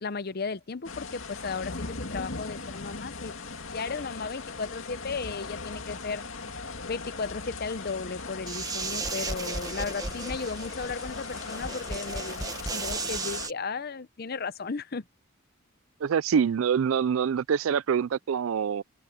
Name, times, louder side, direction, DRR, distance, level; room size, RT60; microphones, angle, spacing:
voice 1, 0.0-3.4 3.7-6.2 6.9-15.0, left 4 dB, 50° left, 0.7 m, -35 dB
sound 1, 0.8-13.5, left 4 dB, 75° left, 2.2 m, -39 dB
sound 2, 8.5-13.5, right 3 dB, 20° right, 1.2 m, -35 dB
voice 2, 16.0-18.8, right 7 dB, 80° right, 0.4 m, -25 dB
open air
head